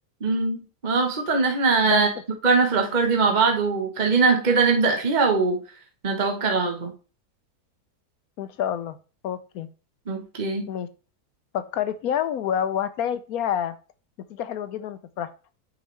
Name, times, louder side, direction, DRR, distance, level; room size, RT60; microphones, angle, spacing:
voice 1, 0.2-2.1 2.4-5.6 6.0-6.9 10.1-10.7, right 4 dB, 30° right, 2 dB, 1.1 m, -21 dB
voice 2, 8.4-9.0 9.2-9.7 10.7-10.9 11.5-13.7 14.3-15.3, left 9 dB, 70° left, 12 dB, 1.0 m, -28 dB
8.5 x 5.2 x 3.2 m, 0.35 s
omnidirectional pair, 1.8 m